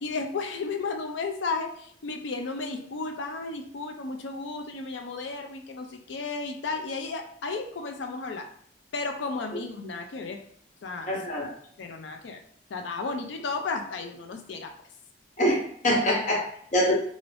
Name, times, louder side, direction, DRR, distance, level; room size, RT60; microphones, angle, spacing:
voice 1, 0.0-8.5 8.9-10.4 10.8-11.1 11.8-12.4 12.7-14.7, left 4 dB, 85° left, 6 dB, 0.4 m, -33 dB
voice 2, 11.1-11.5 15.4-16.9, equal, 40° left, -1 dB, 0.7 m, -25 dB
2.5 x 2.5 x 3.3 m, 0.64 s
head